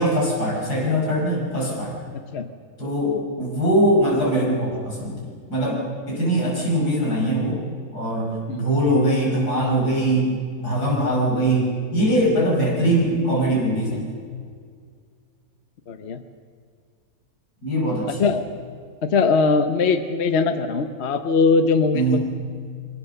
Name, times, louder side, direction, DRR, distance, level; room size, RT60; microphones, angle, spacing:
voice 1, 0.0-2.0 2.8-5.8 6.1-7.6 7.9-14.1 17.6-18.4 21.9-22.2, right 1 dB, 80° left, -3 dB, 5.9 m, -22 dB
voice 2, 2.1-2.5 8.5-8.7 15.9-16.2 18.1-18.4 19.0-22.2, left 4 dB, 50° left, 9 dB, 1.1 m, -21 dB
23.0 x 18.0 x 6.7 m, 2.1 s
omnidirectional pair, 1.7 m